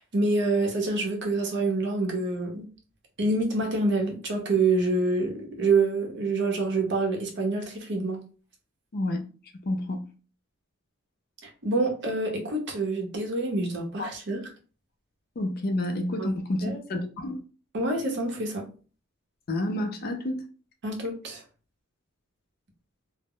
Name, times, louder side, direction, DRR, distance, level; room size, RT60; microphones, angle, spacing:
voice 1, 0.0-2.7 3.2-8.2 11.4-14.5 16.2-16.3 16.6-16.8 17.7-18.7 20.8-21.4, right 3 dB, 60° right, 0.7 m, -27 dB
voice 2, 9.7-10.0 14.0-14.1 15.4-17.4 19.5-20.4, left 1 dB, 45° left, 0.4 m, -29 dB
2.0 x 2.0 x 3.6 m
head